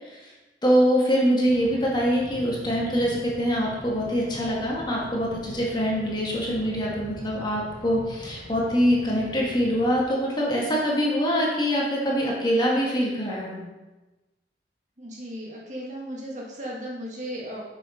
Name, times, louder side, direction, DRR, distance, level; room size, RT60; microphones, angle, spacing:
voice 1, 0.6-13.6, equal, 25° left, -3 dB, 1.9 m, -24 dB
sound 1, 1.5-10.0, equal, 40° left, 1.5 m, -42 dB
voice 2, 15.0-17.6, equal, 40° right, -3 dB, 1.8 m, -36 dB
7.5 x 6.7 x 5.1 m, 1.1 s
head